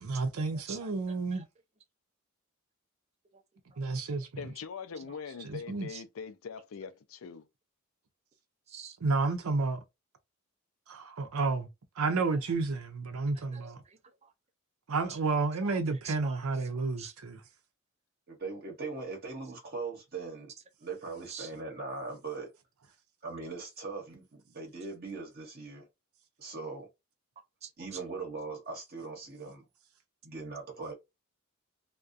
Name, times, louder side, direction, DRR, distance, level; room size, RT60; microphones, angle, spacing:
voice 1, 0.0-1.4 3.8-4.3 5.4-5.9 9.0-9.8 10.9-11.7 12.0-13.8 14.9-17.4, right 3 dB, 85° right, 0.6 m, -31 dB
voice 2, 4.4-7.5, left 6 dB, 70° left, 0.4 m, -42 dB
voice 3, 13.4-14.3 15.1-15.2 15.6-16.4 16.7-17.1 21.3-21.5 27.6-28.0, right 7 dB, 30° right, 0.5 m, -47 dB
voice 4, 18.3-20.5 20.8-22.5 23.2-25.9 26.4-26.9 27.8-29.6 30.2-30.9, right 4 dB, 50° right, 0.8 m, -40 dB
2.3 x 2.2 x 2.5 m
head